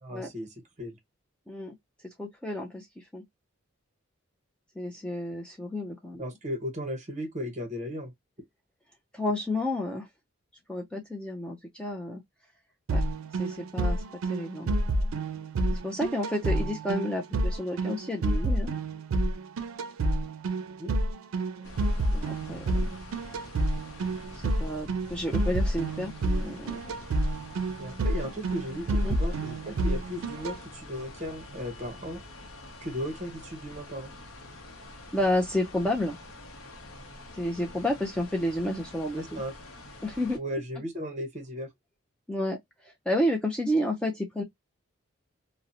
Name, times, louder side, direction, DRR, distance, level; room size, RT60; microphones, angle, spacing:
voice 1, 0.0-0.5 0.8-1.0 6.2-8.1 20.8-20.9 27.8-32.2 32.8-34.1 39.1-39.5 40.3-41.7, equal, 35° right, 0.7 m, -36 dB
voice 2, 2.2-3.2 4.8-6.2 9.1-10.1 10.7-12.2 12.9-13.0 13.3-14.0 14.3-14.8 15.7-18.7 22.0-23.0 24.4-26.9 28.9-29.2 35.1-36.2 37.3-39.4 40.0-40.4 42.3-44.4, left 1 dB, 5° left, 0.3 m, -31 dB
sound 1, 12.9-30.6, right 2 dB, 85° right, 0.4 m, -29 dB
sound 2, 21.6-40.4, left 1 dB, 85° left, 0.7 m, -46 dB
2.6 x 2.0 x 2.6 m
head